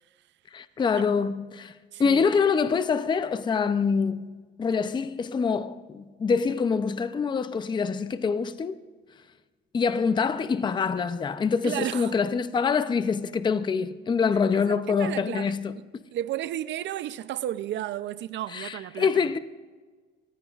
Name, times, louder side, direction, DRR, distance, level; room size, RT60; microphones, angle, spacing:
voice 1, 0.5-1.7 2.0-8.8 9.7-15.8 18.5-19.4, left 5 dB, 25° left, 0.5 m, -25 dB
voice 2, 1.9-2.2 11.6-12.1 14.5-19.1, right 12 dB, 70° right, 0.5 m, -33 dB
28.0 x 15.0 x 2.4 m
cardioid pair, 145°, 20 cm